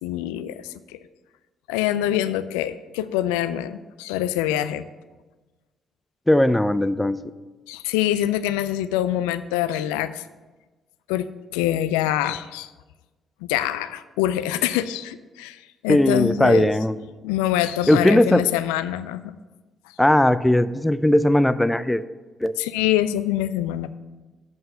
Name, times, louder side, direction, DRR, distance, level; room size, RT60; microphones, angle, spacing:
voice 1, 0.0-0.7 1.7-4.8 7.7-10.2 11.1-11.3 11.5-12.7 13.5-16.7 17.2-19.3 22.6-24.0, left 12 dB, 85° left, 13 dB, 0.3 m, -25 dB
voice 2, 6.3-7.2 15.9-17.0 17.9-18.4 20.0-22.0 22.4-22.5, left 1 dB, 10° left, 14 dB, 0.5 m, -18 dB
7.8 x 5.6 x 6.6 m, 1.2 s
hypercardioid pair, 50°, 0 cm